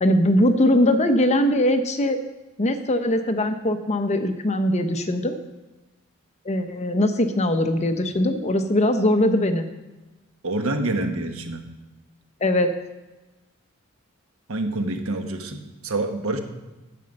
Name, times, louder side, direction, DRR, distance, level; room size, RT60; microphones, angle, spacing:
voice 1, 0.0-2.2 2.6-5.4 6.4-9.7 12.4-12.7, left 1 dB, 30° left, 7 dB, 0.7 m, -21 dB
voice 2, 10.4-11.6 14.5-16.4, right 2 dB, 75° right, 6 dB, 1.2 m, -27 dB
11.0 x 7.6 x 5.3 m, 1.1 s
head